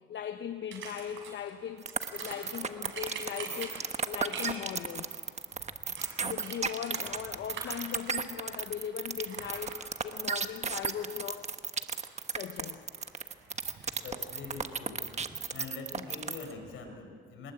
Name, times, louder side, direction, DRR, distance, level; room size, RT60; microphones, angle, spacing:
voice 1, 0.1-5.1 5.9-11.5 12.3-12.8, left 9 dB, 65° left, 9 dB, 1.0 m, -39 dB
sound 1, 0.7-16.8, right 5 dB, 70° right, 5.9 m, -48 dB
sound 2, 1.9-16.5, right 5 dB, 35° right, 1.3 m, -34 dB
voice 2, 14.0-15.0 15.3-17.5, left 4 dB, 85° left, 5 dB, 4.9 m, -44 dB
23.5 x 20.5 x 8.5 m, 2.1 s
cardioid pair, 90°, 20 cm